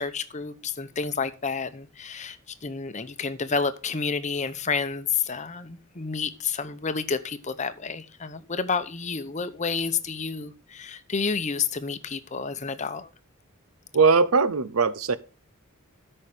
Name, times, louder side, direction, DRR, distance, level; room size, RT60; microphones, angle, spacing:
voice 1, 0.0-13.1, left 5 dB, 35° left, 0.8 m, -30 dB
voice 2, 13.9-15.2, right 4 dB, 90° right, 0.8 m, -20 dB
13.0 x 5.5 x 5.0 m
head